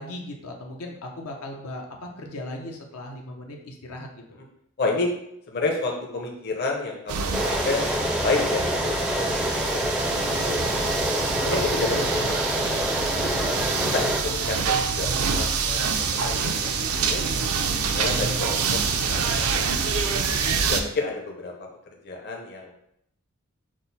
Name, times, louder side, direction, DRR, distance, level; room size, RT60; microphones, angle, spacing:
voice 1, 0.0-4.4 11.2-11.7, left 1 dB, 80° left, 1 dB, 0.7 m, -38 dB
voice 2, 4.8-5.1 5.5-7.8 8.2-10.6 11.4-12.9 13.5-17.2 18.0-18.8 19.1-20.2 20.7-21.5 22.0-22.7, left 3 dB, 50° left, 0 dB, 0.7 m, -30 dB
sound 1, 7.1-20.8, right 5 dB, 85° right, 0.5 m, -26 dB
sound 2, 7.3-14.2, equal, 5° right, 0.4 m, -26 dB
6.2 x 2.1 x 4.0 m, 0.76 s
head